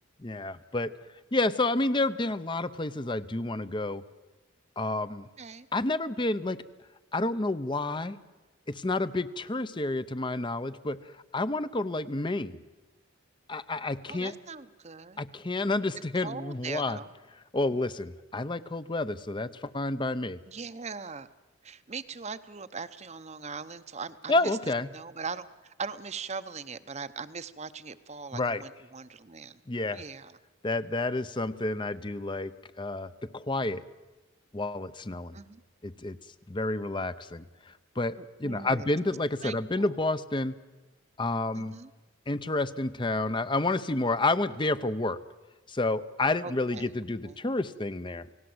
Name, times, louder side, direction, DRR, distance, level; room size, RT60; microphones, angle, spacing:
voice 1, 0.2-0.9 1.3-4.0 4.8-5.3 5.7-6.6 7.1-8.2 8.7-11.0 11.3-12.6 13.5-14.3 15.2-17.0 17.5-20.4 24.3-24.9 28.3-28.6 29.7-30.0 30.6-32.5 32.8-33.8 34.5-35.4 35.8-36.2 36.5-37.4 38.0-40.6 41.2-41.7 42.3-45.2 45.7-48.3, left 2 dB, 25° left, 13 dB, 0.7 m, -29 dB
voice 2, 14.1-15.2 16.2-17.1 20.5-21.3 21.6-24.6 24.9-29.6 29.9-30.4 35.3-35.6 38.2-38.9 39.4-39.9 41.5-41.9 46.4-46.9 47.2-47.4, right 5 dB, 35° right, 12 dB, 0.9 m, -40 dB
29.5 x 18.0 x 7.9 m, 1.2 s
head